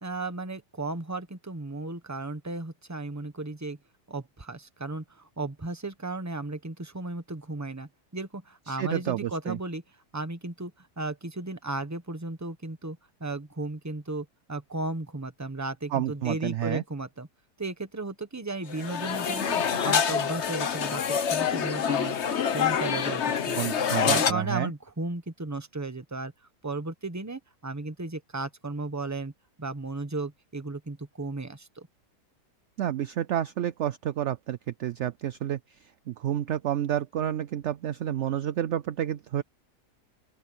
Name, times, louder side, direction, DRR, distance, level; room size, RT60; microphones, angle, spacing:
voice 1, 0.0-3.8 4.1-9.8 10.1-17.3 17.6-22.2 22.5-23.6 24.0-26.3 26.6-29.3 29.6-31.9, right 2 dB, 10° right, 1.1 m, -35 dB
voice 2, 8.7-9.6 15.9-16.8 23.6-24.7 32.8-35.6 36.1-39.4, right 11 dB, 70° right, 0.7 m, -30 dB
sound 1, 18.7-24.3, left 7 dB, 50° left, 1.1 m, -26 dB
open air
omnidirectional pair, 1.7 m